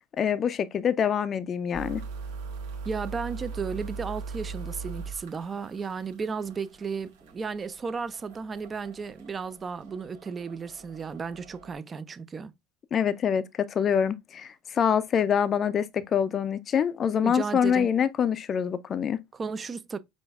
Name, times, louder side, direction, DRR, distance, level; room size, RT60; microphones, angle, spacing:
voice 1, 0.2-2.0 12.9-19.2, left 8 dB, 40° left, 0.4 m, -25 dB
sound 1, 1.7-11.8, right 4 dB, 80° right, 1.2 m, -40 dB
voice 2, 2.8-12.5 17.2-17.9 19.3-20.0, right 5 dB, 25° right, 0.5 m, -34 dB
5.0 x 2.5 x 2.4 m
hypercardioid pair, 90°, 0 cm